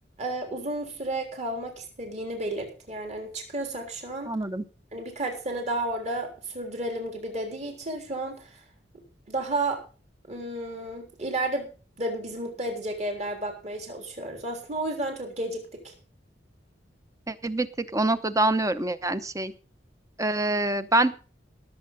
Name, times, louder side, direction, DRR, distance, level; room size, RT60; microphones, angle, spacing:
voice 1, 0.2-4.3 4.9-8.5 9.3-9.8 10.3-11.7 12.0-15.9, right 2 dB, 40° right, 2 dB, 3.6 m, -32 dB
voice 2, 4.3-4.6 17.3-17.7 17.9-19.5 20.2-21.1, right 2 dB, 20° right, 12 dB, 0.8 m, -25 dB
18.0 x 7.6 x 5.4 m, 0.35 s
head